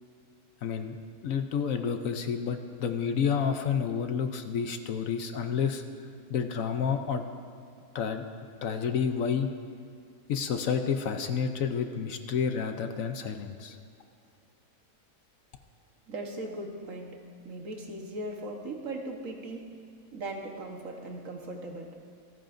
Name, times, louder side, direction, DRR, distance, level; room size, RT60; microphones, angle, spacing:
voice 1, 0.6-0.9 1.2-5.8 6.3-7.2 7.9-8.2 8.6-9.5 10.3-13.8, left 7 dB, 65° left, 7 dB, 1.1 m, -29 dB
voice 2, 16.1-17.2 17.4-19.6 20.1-21.9, right 2 dB, 60° right, 1 dB, 1.6 m, -38 dB
26.0 x 10.5 x 2.6 m, 2.5 s
omnidirectional pair, 1.6 m